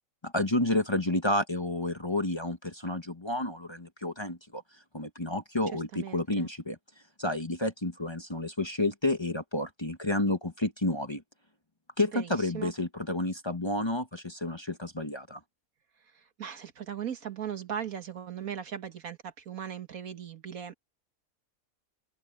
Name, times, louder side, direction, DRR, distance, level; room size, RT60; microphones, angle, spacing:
voice 1, 0.2-4.6 4.9-6.8 7.2-11.2 12.0-15.4, left 2 dB, 20° left, 1.2 m, -30 dB
voice 2, 5.9-6.5 12.1-12.7 16.1-20.8, right 8 dB, 75° right, 1.9 m, -38 dB
open air
omnidirectional pair, 1.5 m